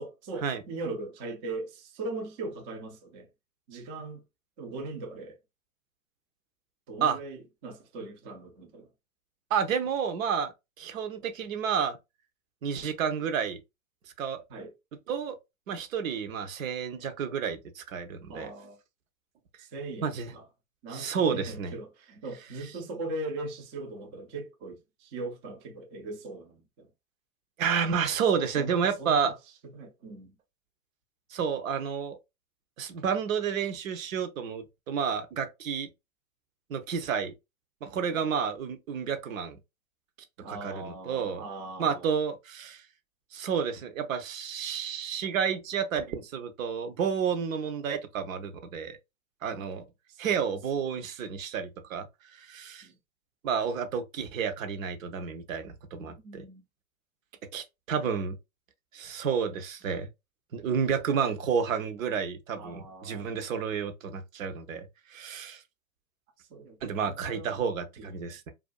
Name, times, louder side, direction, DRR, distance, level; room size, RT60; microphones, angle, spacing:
voice 1, 0.0-3.3 3.7-4.2 4.6-5.4 6.9-8.9 14.5-14.7 18.3-18.8 19.6-20.4 20.8-26.9 28.4-29.4 29.7-30.4 38.1-38.2 40.4-42.1 49.5-50.5 50.8-50.9 52.8-53.0 56.2-56.6 62.6-63.3 66.4-66.8 67.1-67.6 68.0-68.2, right 2 dB, 20° right, 0.3 m, -40 dB
voice 2, 9.5-12.0 12.6-13.6 14.2-14.4 15.1-15.4 15.7-18.5 20.0-20.3 20.9-21.7 27.6-29.3 31.3-32.2 32.8-35.9 36.7-37.3 37.8-39.6 40.5-41.4 41.8-42.8 43.3-49.0 49.4-49.8 50.2-52.1 52.3-52.9 53.4-56.5 57.5-58.4 58.9-60.1 60.5-65.6 66.8-68.5, right 7 dB, 70° right, 0.7 m, -30 dB
2.5 x 2.4 x 2.2 m
hypercardioid pair, 115°, 42 cm